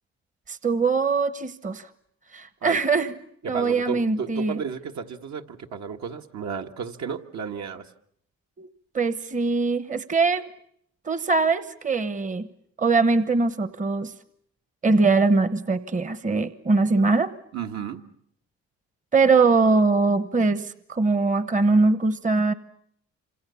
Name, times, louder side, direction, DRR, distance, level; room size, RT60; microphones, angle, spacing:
voice 1, 0.5-1.9 2.3-3.2 3.4-4.6 8.6-8.7 8.9-10.5 11.0-12.5 12.8-14.1 14.8-17.3 19.1-22.5, right 3 dB, 25° right, 14 dB, 1.1 m, -22 dB
voice 2, 3.4-7.9 17.5-18.0, right 6 dB, 65° right, 4 dB, 1.7 m, -33 dB
27.5 x 26.5 x 7.0 m, 0.70 s
cardioid pair, 90°, 30 cm